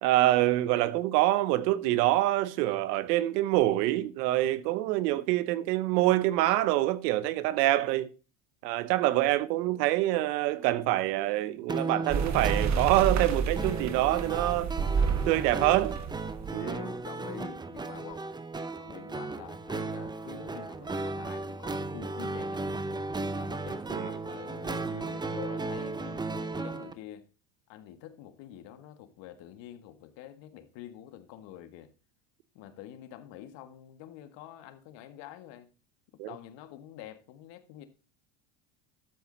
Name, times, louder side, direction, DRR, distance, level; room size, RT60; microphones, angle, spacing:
voice 1, 0.0-8.1 8.6-14.7 15.3-15.9 16.5-16.8 23.9-24.1 36.2-36.3, right 16 dB, 85° right, 1.0 m, -26 dB
sound 1, 11.7-26.9, right 3 dB, 10° right, 0.6 m, -36 dB
sound 2, 12.1-16.6, right 6 dB, 35° right, 1.2 m, -30 dB
voice 2, 15.0-15.4 16.6-18.2 18.8-22.8 23.4-27.3 27.7-31.9 32.6-35.7 36.2-37.8, left 11 dB, 65° left, 1.8 m, -46 dB
12.0 x 7.5 x 3.9 m
supercardioid pair, 115°, 47 cm